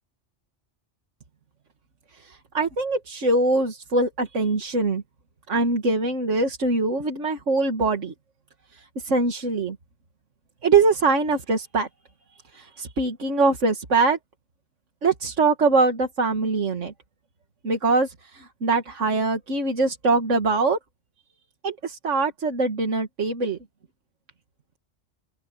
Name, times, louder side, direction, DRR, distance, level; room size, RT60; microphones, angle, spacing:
voice 1, 2.2-5.0 5.5-8.1 9.0-9.8 10.6-11.9 12.5-14.2 15.0-16.9 17.6-20.8 21.6-23.6, right 3 dB, 90° right, 2.2 m, -23 dB
open air
omnidirectional pair, 1.2 m